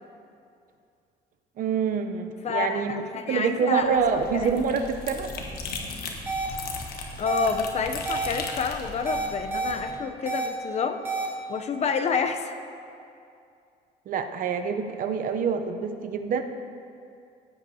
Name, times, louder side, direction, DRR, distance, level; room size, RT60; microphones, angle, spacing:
voice 1, 1.6-2.9 3.3-5.5 14.1-16.4, right 6 dB, 55° right, 7 dB, 0.6 m, -26 dB
voice 2, 2.4-4.5 7.2-11.0 11.5-12.5, left 5 dB, 40° left, 7 dB, 0.6 m, -29 dB
sound 1, 3.8-9.9, left 4 dB, 65° left, 1.2 m, -37 dB
sound 2, 6.3-6.5 7.3-7.5 8.0-8.3 9.1-9.7 10.3-10.5 11.0-11.3, right 4 dB, 10° right, 1.4 m, -29 dB
15.5 x 8.1 x 2.8 m, 2.5 s
cardioid pair, 110°, 17 cm